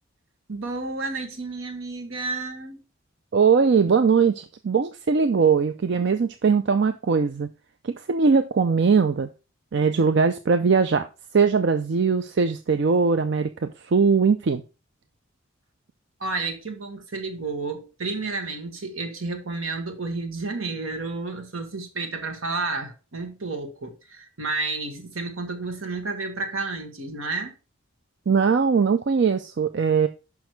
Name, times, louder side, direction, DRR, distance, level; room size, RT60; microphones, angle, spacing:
voice 1, 0.5-2.8 16.2-27.5, right 3 dB, 75° right, 1.6 m, -31 dB
voice 2, 3.3-7.5 7.8-9.3 9.7-11.1 11.3-14.6 28.3-30.1, right 5 dB, 55° right, 0.4 m, -20 dB
6.2 x 5.8 x 4.5 m
head